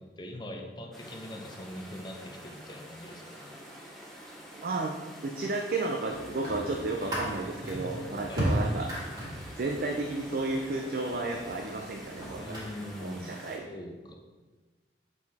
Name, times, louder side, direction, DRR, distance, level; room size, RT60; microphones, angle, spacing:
voice 1, 0.0-3.5 7.6-8.0 8.3-8.5 12.4-14.1, left 1 dB, 25° left, 2 dB, 0.7 m, -42 dB
sound 1, 0.9-13.6, equal, ahead, 1.0 m, -48 dB
voice 2, 4.6-4.9 5.2-8.9 9.6-12.6 13.0-13.7, right 2 dB, 55° right, 2 dB, 0.5 m, -32 dB
sound 2, 6.1-12.7, equal, 25° right, 2.1 m, -36 dB
6.7 x 4.2 x 4.1 m, 1.3 s
head